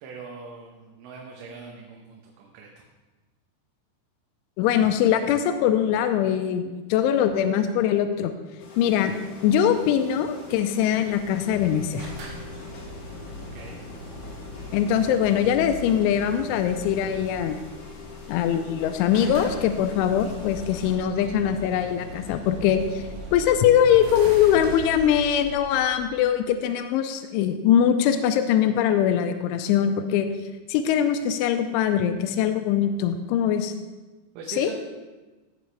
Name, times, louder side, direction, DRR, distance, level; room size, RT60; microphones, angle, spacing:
voice 1, 0.0-2.9 13.4-13.8 34.4-34.7, right 5 dB, 90° right, -1 dB, 3.5 m, -42 dB
voice 2, 4.6-8.3 8.8-9.1 9.4-12.1 14.7-17.6 18.3-30.3 30.7-33.7 34.6-34.7, left 9 dB, 90° left, 7 dB, 3.0 m, -22 dB
sound 1, 8.6-20.9, left 4 dB, 55° left, 1.7 m, -44 dB
sound 2, 11.1-23.5, equal, 10° left, 1.1 m, -47 dB
sound 3, 12.0-17.5 18.5-18.6 18.8-18.9 19.1-26.6, equal, 65° right, 3.5 m, -39 dB
16.0 x 7.8 x 3.3 m, 1.2 s
omnidirectional pair, 5.4 m